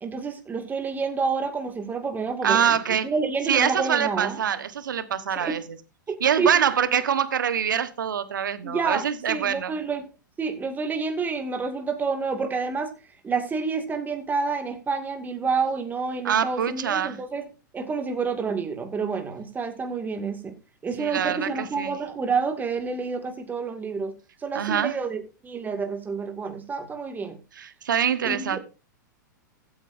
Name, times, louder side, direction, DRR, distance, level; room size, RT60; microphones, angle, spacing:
voice 1, 0.0-4.4 5.4-5.6 6.1-6.5 8.6-10.1 10.4-12.9 13.2-17.5 17.7-20.5 20.8-24.1 24.4-27.4 28.2-28.6, right 4 dB, 15° right, 2.2 m, -29 dB
voice 2, 2.4-3.1 3.4-5.6 6.2-9.7 16.2-17.2 21.0-22.0 24.5-25.0 27.6-28.6, right 8 dB, 75° right, 1.3 m, -24 dB
15.5 x 8.6 x 2.7 m
hypercardioid pair, 105°, 10 cm